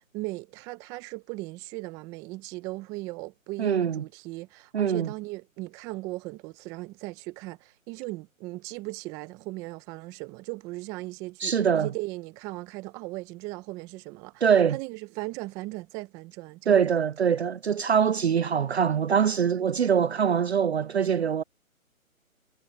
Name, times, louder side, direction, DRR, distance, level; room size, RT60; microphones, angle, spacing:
voice 1, 0.0-16.8, right 21 dB, 10° right, 0.8 m, -38 dB
voice 2, 3.6-4.0 4.7-5.1 11.4-11.9 14.4-14.8 16.7-21.4, right 7 dB, 50° right, 0.5 m, -23 dB
figure-of-eight pair, 145°, 42 cm